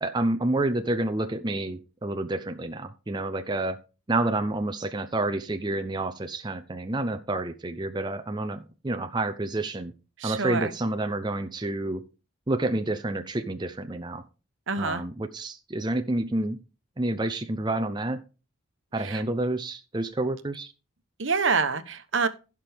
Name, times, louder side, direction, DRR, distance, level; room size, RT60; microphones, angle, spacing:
voice 1, 0.0-3.8 4.1-9.9 10.2-12.0 12.5-14.2 14.8-16.6 17.0-18.2 18.9-20.7, right 2 dB, 20° right, 7 dB, 0.6 m, -29 dB
voice 2, 10.2-10.7 14.7-15.0 19.0-19.2 21.2-22.3, right 4 dB, 65° right, 10 dB, 1.1 m, -26 dB
16.0 x 6.0 x 3.5 m, 0.32 s
head